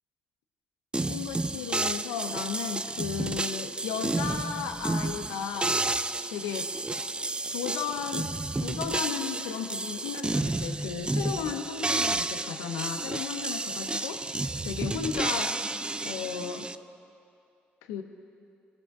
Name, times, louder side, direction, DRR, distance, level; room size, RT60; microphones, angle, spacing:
sound 1, 0.9-16.8, right 2 dB, 20° right, 0.4 m, -31 dB
voice 1, 1.1-5.8 6.3-6.7 7.5-8.3 8.6-15.7 16.0-16.7 17.9-18.0, left 7 dB, 90° left, 6 dB, 0.6 m, -35 dB
18.0 x 7.0 x 3.5 m, 2.5 s
hypercardioid pair, 50°, 5 cm